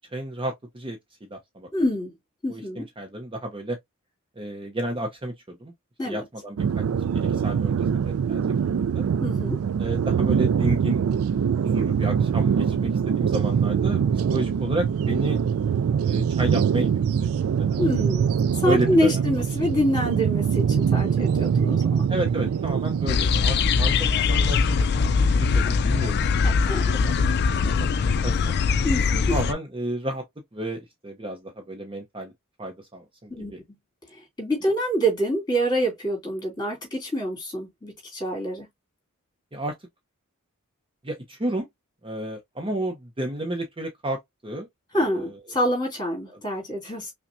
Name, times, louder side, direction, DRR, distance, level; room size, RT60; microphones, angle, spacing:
voice 1, 0.1-1.7 2.5-3.8 4.4-5.7 6.0-6.8 7.1-8.5 8.9-9.0 9.8-11.0 11.6-14.0 14.3-15.4 16.0-18.0 18.6-19.5 22.1-26.2 26.9-28.5 29.3-30.2 30.5-32.3 32.6-33.6 39.5-39.8 41.0-41.7 42.0-44.7 45.0-45.4 46.3-46.4, right 1 dB, 25° right, 0.7 m, -32 dB
voice 2, 1.7-2.1 2.4-2.8 6.0-6.2 9.2-9.6 17.8-18.3 18.6-22.0 26.4-26.8 28.8-29.4 33.3-33.5 34.4-38.7 44.9-47.1, equal, 20° left, 2.7 m, -26 dB
sound 1, 6.6-23.1, right 7 dB, 70° right, 0.3 m, -23 dB
sound 2, 23.1-29.5, left 5 dB, 50° left, 0.4 m, -22 dB
5.7 x 2.2 x 2.6 m
head